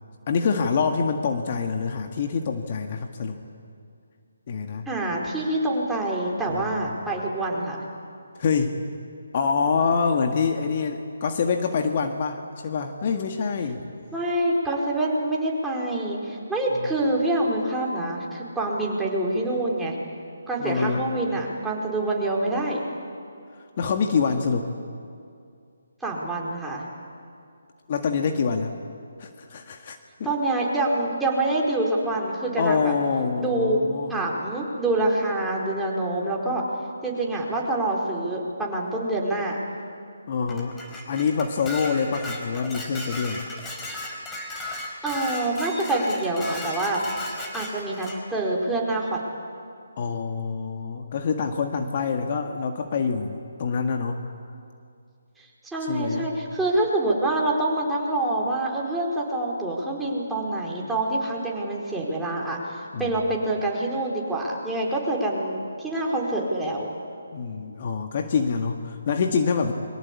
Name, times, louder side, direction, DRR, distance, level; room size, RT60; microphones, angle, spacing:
voice 1, 0.3-3.4 4.5-4.8 6.5-6.7 8.4-8.8 9.3-13.8 16.8-16.9 20.6-21.0 23.8-24.7 27.9-28.7 29.2-30.3 32.6-34.2 40.3-40.8 41.1-43.4 50.0-54.2 55.9-56.3 62.9-63.2 67.3-69.7, left 5 dB, 40° left, 4 dB, 1.8 m, -26 dB
voice 2, 4.9-7.8 14.1-20.0 20.5-22.8 26.0-26.8 30.2-32.9 33.4-33.8 34.1-36.6 37.0-39.6 45.0-47.0 47.5-49.2 55.4-66.9, right 2 dB, 5° right, -4 dB, 4.5 m, -26 dB
Dishes pots and pans, 40.5-48.2, left 1 dB, 10° left, 4.0 m, -36 dB
29.5 x 23.5 x 8.5 m, 2.4 s
figure-of-eight pair, 150°, 0 cm